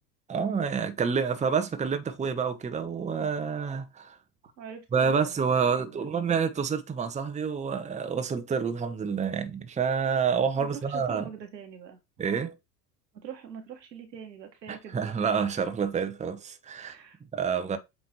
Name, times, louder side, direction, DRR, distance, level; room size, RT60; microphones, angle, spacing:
voice 1, 0.3-4.2 4.9-11.3 12.2-12.5 14.7-16.9 17.3-17.8, right 6 dB, 15° right, 0.8 m, -28 dB
voice 2, 4.6-6.3 10.5-12.0 13.2-15.1 16.8-17.2, right 8 dB, 85° right, 1.5 m, -44 dB
7.5 x 3.3 x 4.2 m
hypercardioid pair, 75°, 49 cm